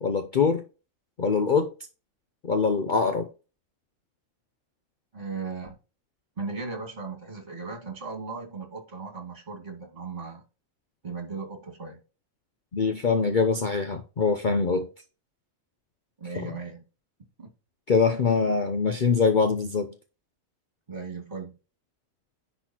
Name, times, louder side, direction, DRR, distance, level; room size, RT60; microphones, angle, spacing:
voice 1, 0.0-0.6 1.2-1.7 2.4-3.3 12.7-14.9 16.4-16.5 17.9-19.9, left 5 dB, 45° left, 0.8 m, -23 dB
voice 2, 5.1-5.8 6.4-10.4 11.0-12.0 16.2-16.8 17.4-17.5 20.9-21.6, right 4 dB, 30° right, 2.4 m, -37 dB
10.5 x 4.2 x 4.4 m
omnidirectional pair, 1.4 m